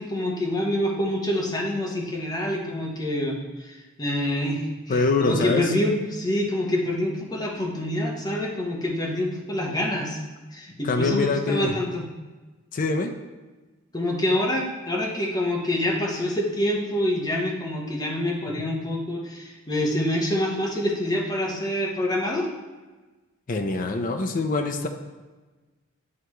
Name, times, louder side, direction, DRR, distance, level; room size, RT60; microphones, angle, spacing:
voice 1, 0.0-10.2 10.5-12.0 13.9-22.5, left 1 dB, 20° left, -2 dB, 1.0 m, -26 dB
voice 2, 4.9-5.7 10.8-11.7 12.7-13.1 23.5-24.9, left 3 dB, 40° left, 5 dB, 0.5 m, -24 dB
9.5 x 3.4 x 3.1 m, 1.2 s
head